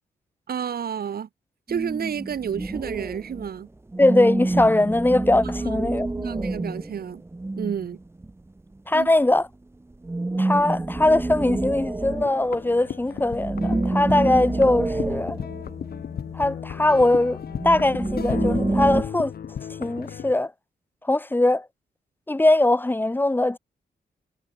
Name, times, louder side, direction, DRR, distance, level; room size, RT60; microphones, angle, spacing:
voice 1, 0.5-1.3 1.7-3.7 5.6-5.9 6.2-7.2 7.6-8.0 8.9-9.1, right 8 dB, 65° right, 7.4 m, -30 dB
sound 1, 1.7-3.5 3.9-8.3 10.0-12.8 13.1-16.3 17.3-19.0, right 2 dB, 15° right, 2.5 m, -27 dB
voice 2, 4.0-6.1 8.9-9.5 10.4-15.4 16.3-17.4 17.6-19.3 19.8-20.5 21.1-21.7 22.3-23.6, left 2 dB, 10° left, 2.8 m, -21 dB
sound 2, 12.0-20.3, left 8 dB, 70° left, 7.3 m, -35 dB
wide cardioid pair, 130°, 17 cm